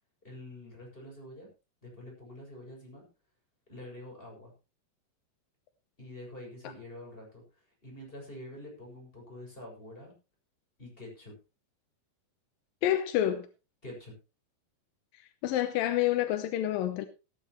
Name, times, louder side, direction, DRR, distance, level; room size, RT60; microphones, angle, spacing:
voice 1, 0.2-1.5 1.8-3.0 3.7-4.5 6.0-7.4 7.8-10.1 10.8-11.3 13.8-14.1, left 1 dB, 10° left, 6.7 m, -46 dB
voice 2, 12.8-13.5 15.4-17.1, left 12 dB, 75° left, 2.1 m, -28 dB
18.5 x 10.5 x 3.1 m
omnidirectional pair, 5.1 m